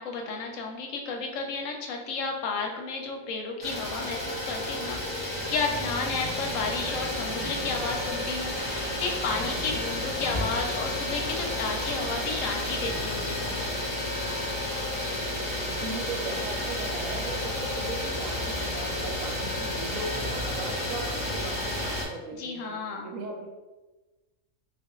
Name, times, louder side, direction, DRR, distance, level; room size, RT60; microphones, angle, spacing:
voice 1, 0.0-13.7 22.4-23.1, left 4 dB, 70° left, 2 dB, 0.9 m, -32 dB
Idling, 3.6-22.1, left 1 dB, 5° right, 0.7 m, -31 dB
sound 1, 5.3-13.3, right 2 dB, 40° left, 0.5 m, -47 dB
sound 2, 7.8-20.8, right 1 dB, 30° right, 0.3 m, -48 dB
voice 2, 15.7-22.8 23.0-23.5, right 3 dB, 75° right, 1 dB, 0.9 m, -38 dB
3.5 x 2.4 x 3.0 m, 1.2 s
omnidirectional pair, 1.4 m